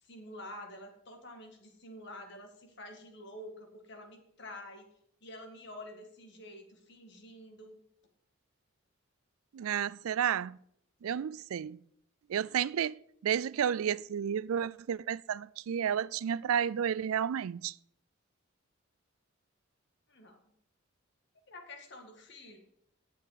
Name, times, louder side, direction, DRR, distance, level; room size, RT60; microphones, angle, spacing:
voice 1, 0.0-4.9 5.2-7.8 20.1-20.4 21.5-22.6, left 1 dB, 55° left, 2.1 m, -48 dB
voice 2, 9.5-10.6 11.0-11.8 12.3-13.0 13.2-17.7, right 8 dB, 85° right, 0.4 m, -31 dB
17.0 x 7.5 x 4.1 m
head